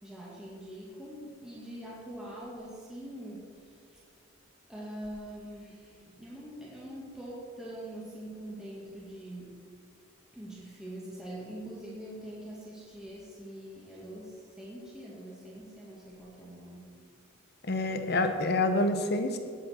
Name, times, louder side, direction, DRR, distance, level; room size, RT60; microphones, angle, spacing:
voice 1, 0.0-4.0 4.7-9.6 10.3-17.0, right 1 dB, 5° right, -7 dB, 2.0 m, -44 dB
voice 2, 17.6-19.4, left 2 dB, 55° left, 7 dB, 1.1 m, -27 dB
17.5 x 7.4 x 4.5 m, 2.1 s
head